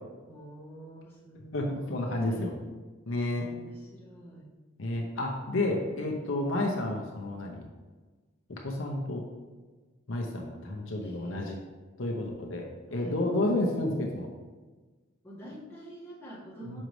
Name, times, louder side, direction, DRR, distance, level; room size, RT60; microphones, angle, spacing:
voice 1, 0.2-2.6 3.3-4.5 11.0-11.5 12.9-13.2 15.2-16.8, right 1 dB, 10° left, -8 dB, 1.6 m, -47 dB
voice 2, 1.5-2.5 3.1-3.5 4.8-7.7 8.5-9.2 10.1-11.6 12.0-14.3 16.7-16.8, left 1 dB, 65° left, 1 dB, 0.7 m, -31 dB
6.3 x 5.1 x 3.1 m, 1.3 s
head